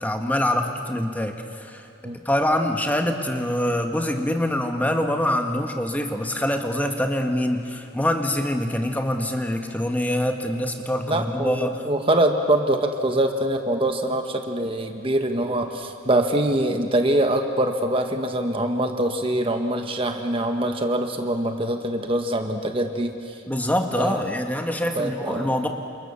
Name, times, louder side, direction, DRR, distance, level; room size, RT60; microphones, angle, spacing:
voice 1, 0.0-1.9 2.2-11.8 23.5-25.7, left 1 dB, 10° left, 4 dB, 1.6 m, -25 dB
voice 2, 11.1-23.4 24.0-24.2 24.9-25.6, right 1 dB, 25° right, 5 dB, 1.3 m, -24 dB
29.0 x 27.0 x 7.1 m, 2.4 s
head